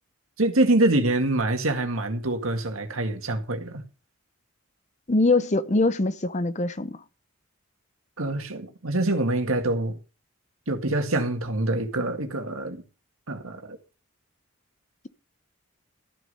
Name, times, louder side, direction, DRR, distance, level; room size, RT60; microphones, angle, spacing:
voice 1, 0.4-3.8 8.2-10.0 10.7-12.8 13.3-13.8, right 2 dB, 80° right, 1.9 m, -25 dB
voice 2, 5.1-7.0, left 2 dB, 35° left, 0.7 m, -23 dB
13.5 x 6.6 x 5.4 m
head